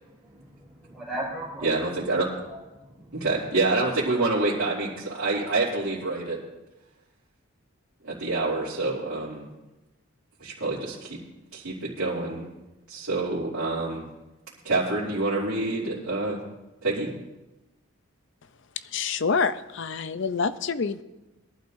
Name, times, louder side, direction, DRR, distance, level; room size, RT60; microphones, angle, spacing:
voice 1, 0.2-1.7 2.5-3.2, right 1 dB, ahead, -7 dB, 5.2 m, -37 dB
voice 2, 1.6-2.3 3.1-6.4 8.0-9.5 10.4-11.2 11.5-12.5 12.9-14.0 14.6-16.4 16.8-17.1, right 2 dB, 85° right, -9 dB, 2.9 m, -27 dB
voice 3, 18.8-21.0, left 5 dB, 60° left, 13 dB, 0.5 m, -27 dB
22.0 x 11.5 x 2.6 m, 1.0 s
head